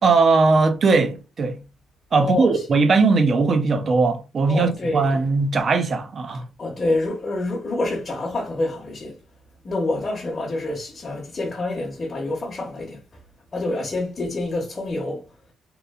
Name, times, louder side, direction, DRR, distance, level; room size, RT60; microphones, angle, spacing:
voice 1, 0.0-1.6 2.1-6.5, right 4 dB, 45° right, 0.5 m, -19 dB
voice 2, 2.1-2.8 4.5-5.2 6.6-9.2 9.6-13.0 13.5-15.3, left 2 dB, 35° left, 0.9 m, -27 dB
3.0 x 2.1 x 2.3 m
cardioid pair, 90°, 0 cm